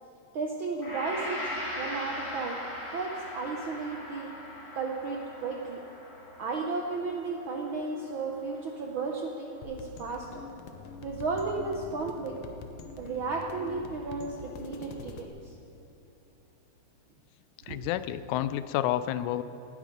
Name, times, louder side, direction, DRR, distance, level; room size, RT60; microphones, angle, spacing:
voice 1, 0.3-1.5 1.8-2.6 2.9-4.3 4.7-5.8 6.4-10.4 11.0-12.4 13.0-15.5 17.7-17.8, right 4 dB, 75° right, 1 dB, 1.2 m, -34 dB
Gong, 0.8-9.2 9.6-9.8, left 1 dB, 25° left, 2.1 m, -40 dB
sound 1, 9.6-15.3, left 5 dB, 65° left, 1.7 m, -44 dB
voice 2, 17.7-19.4, left 12 dB, 85° left, 13 dB, 2.0 m, -30 dB
19.0 x 10.5 x 5.2 m, 2.8 s
omnidirectional pair, 3.4 m